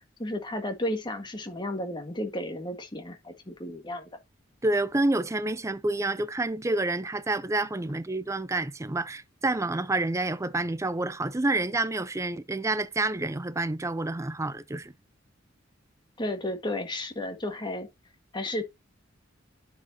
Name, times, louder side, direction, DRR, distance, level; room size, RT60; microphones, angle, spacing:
voice 1, 0.2-4.1 16.2-17.9 18.3-18.6, left 1 dB, 25° left, 1.7 m, -33 dB
voice 2, 4.6-14.9, right 2 dB, 15° right, 0.5 m, -28 dB
11.0 x 4.9 x 2.8 m
head